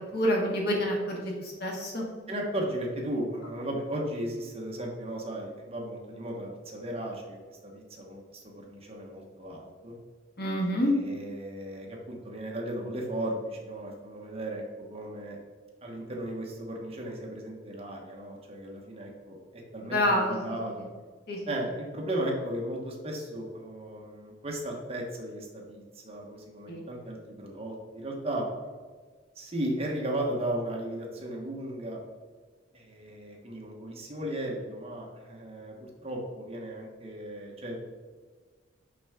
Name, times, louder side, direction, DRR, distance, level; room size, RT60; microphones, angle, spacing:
voice 1, 0.1-1.3 1.6-2.0 10.4-10.9 19.8-20.6 21.3-21.4 26.7-26.8, equal, 55° left, -1 dB, 1.8 m, -27 dB
voice 2, 2.3-7.4 7.6-9.9 10.9-15.4 15.8-20.9 21.5-28.5 29.3-32.0 32.7-35.8 36.0-37.8, right 1 dB, 30° right, -1 dB, 1.2 m, -35 dB
6.0 x 5.8 x 3.6 m, 1.5 s
head